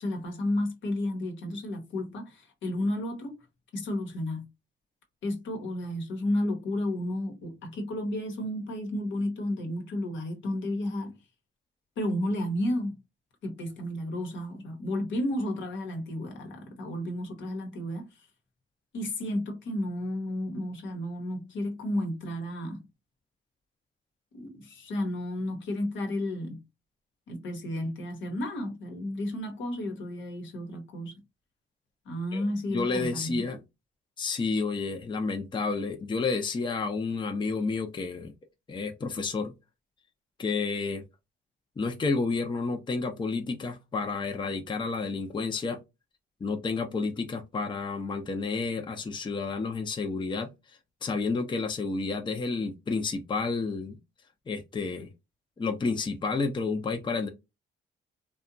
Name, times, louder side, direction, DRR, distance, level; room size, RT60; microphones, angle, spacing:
voice 1, 0.0-3.4 3.7-4.4 5.2-11.1 12.0-13.0 13.4-18.1 18.9-22.8 24.3-26.6 27.3-31.1 32.0-33.4, left 1 dB, 70° left, 1.1 m, -32 dB
voice 2, 32.7-33.6 34.2-38.3 38.7-39.5 40.4-41.0 41.8-45.8 46.4-50.5 51.0-54.0 54.5-55.1 55.6-57.3, left 4 dB, 25° left, 0.5 m, -30 dB
2.7 x 2.3 x 2.5 m
cardioid pair, 90°, 20 cm